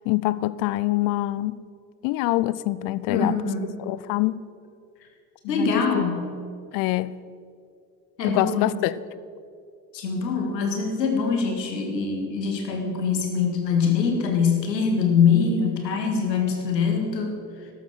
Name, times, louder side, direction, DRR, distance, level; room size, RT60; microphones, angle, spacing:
voice 1, 0.1-1.6 2.0-3.4 3.8-4.4 5.4-6.0 6.7-7.2 8.2-8.9, left 17 dB, 45° left, 0.5 m, -25 dB
voice 2, 3.1-3.7 5.5-6.2 8.2-8.7 9.9-17.4, left 5 dB, 75° left, 2.1 m, -23 dB
13.5 x 12.0 x 4.9 m
figure-of-eight pair, 65°, 50 cm